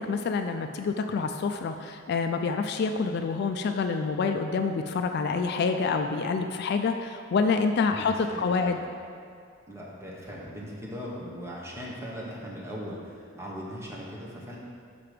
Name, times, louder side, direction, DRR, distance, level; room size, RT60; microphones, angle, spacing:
voice 1, 0.0-8.8, left 4 dB, 55° left, 6 dB, 0.3 m, -27 dB
voice 2, 7.9-8.8 9.7-14.6, equal, 15° right, -5 dB, 1.2 m, -39 dB
5.9 x 5.8 x 5.0 m, 2.4 s
head